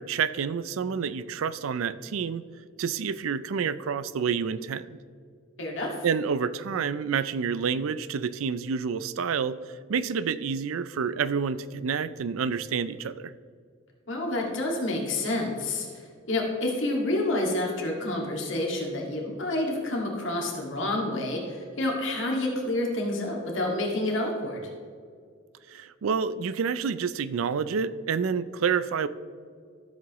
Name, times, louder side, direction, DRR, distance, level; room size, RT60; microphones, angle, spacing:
voice 1, 0.0-2.4 2.8-4.9 6.0-9.6 9.9-13.3 25.7-29.1, right 6 dB, 80° right, 15 dB, 0.4 m, -28 dB
voice 2, 5.6-5.9 14.1-24.6, left 1 dB, 65° left, -1 dB, 2.0 m, -29 dB
13.5 x 7.4 x 3.1 m, 2.1 s
head